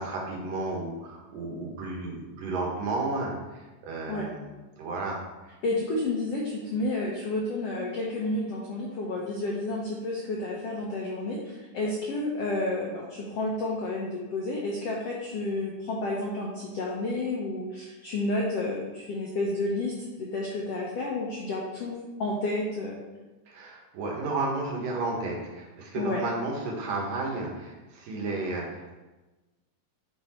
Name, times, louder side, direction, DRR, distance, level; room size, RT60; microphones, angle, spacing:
voice 1, 0.0-4.5 4.8-5.2 23.5-28.9, right 2 dB, 75° right, -1 dB, 3.0 m, -32 dB
voice 2, 5.6-23.0 25.9-26.2, left 2 dB, 80° left, -2 dB, 1.4 m, -31 dB
8.5 x 4.2 x 4.3 m, 1.1 s
omnidirectional pair, 4.1 m